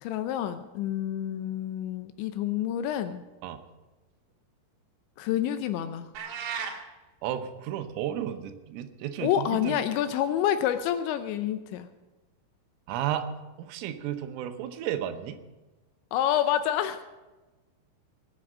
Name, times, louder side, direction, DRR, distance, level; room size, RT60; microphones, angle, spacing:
voice 1, 0.0-3.2 5.2-6.1 9.2-11.9 16.1-17.0, left 11 dB, 80° left, 10 dB, 2.8 m, -28 dB
sound 1, 6.1-6.8, right 7 dB, 65° right, 3.7 m, -34 dB
voice 2, 7.2-9.8 12.9-13.3 13.6-15.4, right 10 dB, 85° right, 8 dB, 3.6 m, -33 dB
19.5 x 7.7 x 7.4 m, 1.1 s
omnidirectional pair, 5.7 m